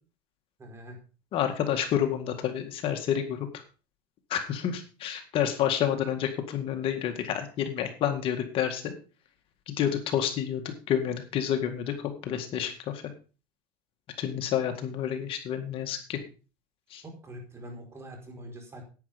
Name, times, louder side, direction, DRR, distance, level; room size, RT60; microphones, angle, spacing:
voice 1, 0.6-1.0 16.9-18.8, equal, 20° right, 3 dB, 4.6 m, -44 dB
voice 2, 1.3-3.6 4.3-8.9 9.7-13.0 14.2-16.2 16.9-17.0, left 9 dB, 50° left, 6 dB, 1.9 m, -29 dB
10.5 x 9.5 x 5.1 m, 0.35 s
supercardioid pair, 130°, 12 cm